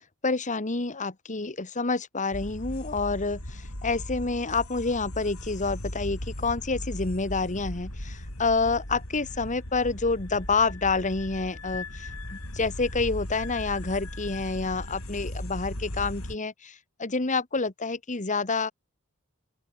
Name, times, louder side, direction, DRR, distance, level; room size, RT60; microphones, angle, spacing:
voice 1, 0.2-3.4 3.8-16.7 17.0-18.7, left 4 dB, 35° left, 1.7 m, -28 dB
sound 1, 2.3-16.4, left 1 dB, 90° left, 5.5 m, -37 dB
open air
head